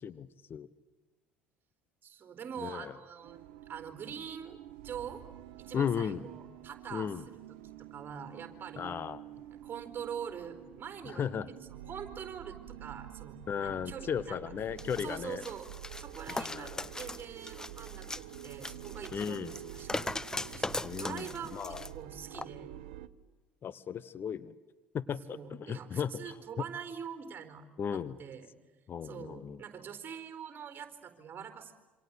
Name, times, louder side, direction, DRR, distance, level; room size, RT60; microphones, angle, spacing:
voice 1, 0.0-0.7 2.6-2.9 5.7-6.2 6.9-7.2 8.8-9.2 11.1-11.5 13.5-15.4 16.3-16.9 19.1-19.5 20.8-21.3 21.5-21.8 23.6-24.5 24.9-26.3 27.8-28.2 28.9-29.6, left 7 dB, 40° left, 15 dB, 1.1 m, -35 dB
voice 2, 2.0-3.4 3.7-5.2 5.6-7.1 7.5-9.0 9.5-11.3 11.6-14.4 15.0-15.7 16.0-22.7 25.3-27.7 27.9-28.6 29.0-31.7, right 7 dB, 35° right, 9 dB, 4.3 m, -44 dB
sound 1, 3.2-23.1, right 13 dB, 70° right, 1.2 m, -48 dB
sound 2, 14.8-21.9 22.3-22.5, left 2 dB, 10° left, 0.9 m, -40 dB
27.5 x 26.0 x 8.3 m, 1.2 s
hypercardioid pair, 65°, 6 cm